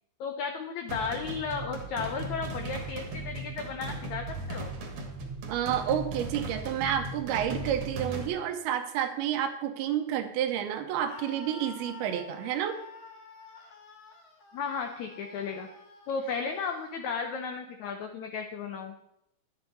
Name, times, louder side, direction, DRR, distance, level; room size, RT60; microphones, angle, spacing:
voice 1, 0.2-4.7 14.5-15.7 16.1-18.9, left 5 dB, 85° left, 5 dB, 1.6 m, -34 dB
sound 1, 0.9-8.3, right 2 dB, 55° right, 1.8 m, -37 dB
voice 2, 5.5-12.8, right 10 dB, 85° right, 7 dB, 2.8 m, -30 dB
Screaming, 11.0-17.0, left 4 dB, 55° left, 1.8 m, -49 dB
11.5 x 9.3 x 4.1 m, 0.78 s
omnidirectional pair, 4.4 m